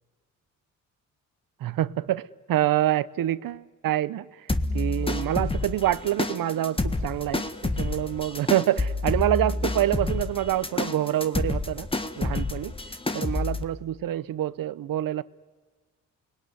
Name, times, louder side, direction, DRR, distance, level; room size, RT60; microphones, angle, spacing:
voice 1, 1.6-4.5 4.7-11.9 12.2-12.7 13.1-15.2, right 13 dB, 75° right, 0.9 m, -26 dB
sound 1, 4.5-13.6, left 2 dB, 15° left, 1.6 m, -29 dB
29.0 x 21.0 x 9.5 m
cardioid pair, 85°, 34 cm